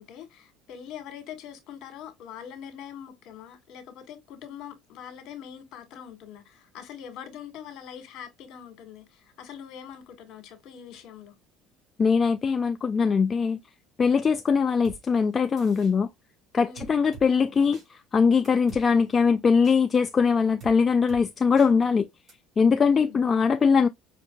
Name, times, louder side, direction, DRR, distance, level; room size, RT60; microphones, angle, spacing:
voice 1, 0.0-11.3 16.6-16.9 22.9-23.3, left 9 dB, 60° left, 1.4 m, -43 dB
voice 2, 12.0-13.6 14.0-16.1 16.5-17.8 18.1-22.1 22.6-23.9, left 5 dB, 30° left, 0.3 m, -21 dB
sound 1, 14.8-15.0 15.6-15.9 16.8-17.3 17.7-17.9 18.4-18.8 19.6-19.8 20.6-20.7 21.1-21.2 21.6-21.7 22.3-22.4, right 7 dB, 40° right, 2.8 m, -44 dB
5.2 x 2.5 x 2.2 m
supercardioid pair, 95°, 0 cm